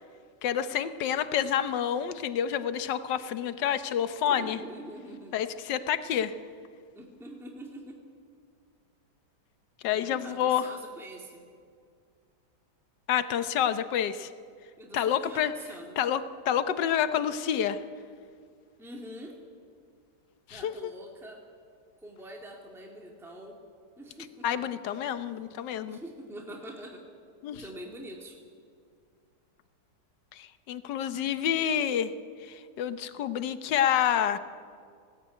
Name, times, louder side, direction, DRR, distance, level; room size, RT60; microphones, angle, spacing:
voice 1, 0.4-4.6 5.3-6.3 9.8-10.7 13.1-14.3 14.9-15.5 16.0-17.8 20.5-20.9 24.4-26.0 27.4-27.6 30.3-32.1 32.4-34.4, left 9 dB, 85° left, 12 dB, 1.5 m, -28 dB
voice 2, 4.2-5.3 6.9-8.0 9.9-11.4 14.8-16.0 18.8-19.4 20.5-21.4 22.0-23.6 24.0-25.2 25.9-27.0 27.5-28.4, right 1 dB, ahead, 0 dB, 2.1 m, -45 dB
20.5 x 17.5 x 9.2 m, 2.2 s
omnidirectional pair, 1.8 m